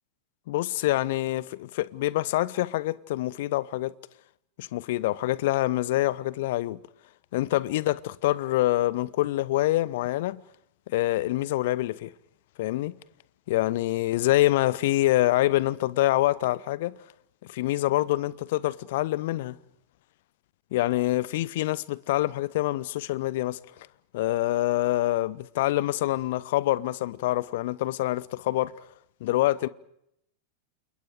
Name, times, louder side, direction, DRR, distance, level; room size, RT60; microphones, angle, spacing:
voice 1, 0.5-3.9 4.6-6.8 7.3-10.4 10.9-12.1 12.6-12.9 13.5-17.0 17.5-19.6 20.7-23.9 24.1-28.9 29.2-29.7, left 16 dB, 55° left, 0.9 m, -26 dB
29.0 x 28.5 x 5.0 m
figure-of-eight pair, 90°, 0 cm